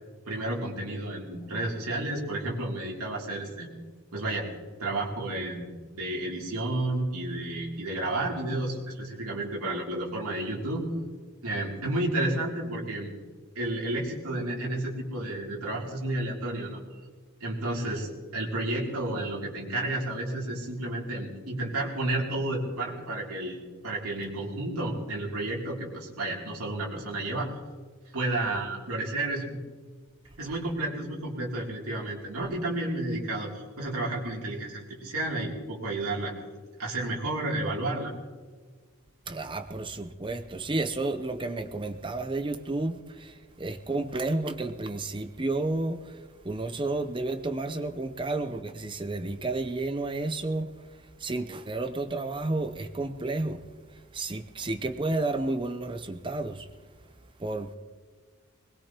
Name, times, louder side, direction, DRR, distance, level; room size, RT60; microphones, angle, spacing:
voice 1, 0.3-3.7 4.1-4.5 4.8-10.8 11.4-13.1 13.5-16.8 17.4-27.5 28.1-29.6 30.4-36.3 36.8-38.1, right 2 dB, 85° right, 3.0 m, -31 dB
voice 2, 39.3-46.0 46.4-50.8 51.2-53.6 54.1-56.7 57.4-57.8, right 2 dB, 20° right, 0.7 m, -31 dB
22.0 x 20.0 x 3.0 m
head